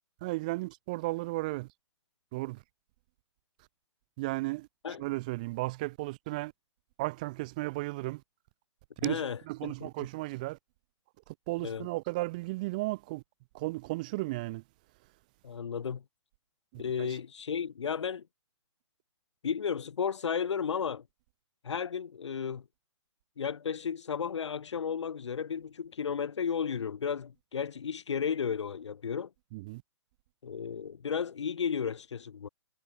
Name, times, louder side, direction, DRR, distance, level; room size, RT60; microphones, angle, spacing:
voice 1, 0.2-1.7 2.3-2.6 4.2-4.7 5.0-6.5 7.0-8.2 9.0-10.6 11.5-13.2 13.5-14.6 16.7-17.2 29.5-29.8, right 22 dB, 15° right, 0.6 m, -34 dB
voice 2, 9.0-10.1 11.6-11.9 15.4-16.0 16.8-18.2 19.4-21.0 21.6-22.6 23.4-29.3 30.4-32.5, left 7 dB, 70° left, 4.7 m, -33 dB
hypercardioid pair, 175°, 16 cm